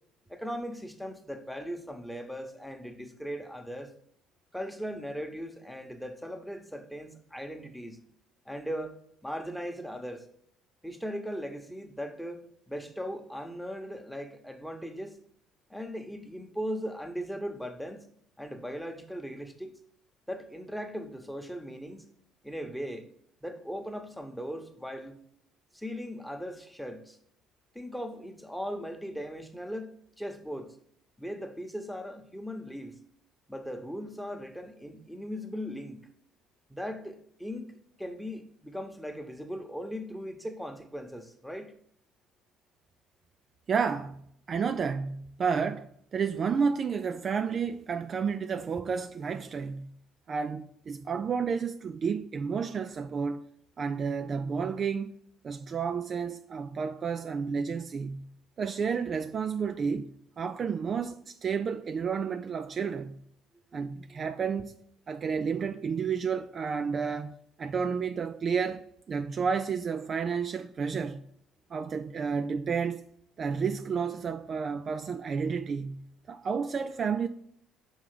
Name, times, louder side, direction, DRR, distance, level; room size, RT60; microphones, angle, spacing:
voice 1, 0.3-3.9 4.5-8.0 8.5-9.0 9.2-10.2 10.8-15.2 15.7-18.1 18.4-19.8 20.3-22.1 22.4-23.1 23.4-25.2 25.7-27.2 27.7-30.7 31.2-33.0 33.5-36.1 36.7-41.7, equal, ahead, 1.0 m, -38 dB
voice 2, 43.7-44.2 44.5-49.9 50.3-53.4 53.8-55.2 55.4-58.2 58.6-60.1 60.4-63.1 63.7-64.7 65.1-71.2 71.7-73.0 73.4-76.0 76.3-77.3, right 6 dB, 45° right, 0.3 m, -31 dB
5.6 x 3.5 x 5.0 m
hypercardioid pair, 55°, 0 cm